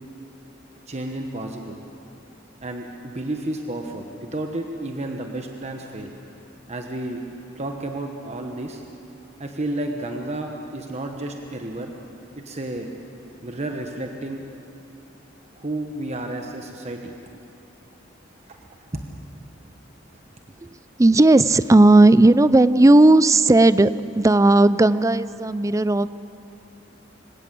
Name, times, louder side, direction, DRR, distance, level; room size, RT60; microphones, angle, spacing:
voice 1, 0.9-1.8 2.6-6.1 6.7-7.2 7.6-8.8 9.4-11.9 12.4-12.9 13.4-14.4 15.5-17.1 18.5-18.6 18.9-19.2, right 1 dB, 35° right, 3 dB, 1.3 m, -31 dB
voice 2, 20.6-26.1, right 2 dB, 15° right, 15 dB, 0.5 m, -15 dB
26.0 x 17.0 x 7.7 m, 2.8 s
head